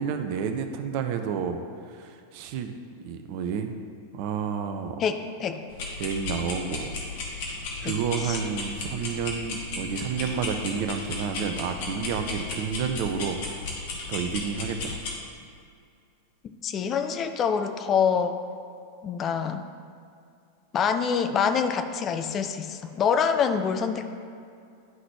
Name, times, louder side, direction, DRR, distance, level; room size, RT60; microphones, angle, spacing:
voice 1, 0.0-2.7 3.0-3.8 4.1-5.0 6.0-7.0 7.5-13.4 14.1-15.0, right 7 dB, 45° right, 6 dB, 0.5 m, -30 dB
voice 2, 5.0-5.6 7.8-7.9 8.2-8.4 16.6-18.4 19.0-19.6 20.7-24.1, left 6 dB, 30° left, 7 dB, 0.4 m, -25 dB
sound 1, 5.7-15.2, left 3 dB, 50° left, 1.2 m, -35 dB
10.5 x 3.9 x 3.1 m, 2.4 s
figure-of-eight pair, 90°, 0 cm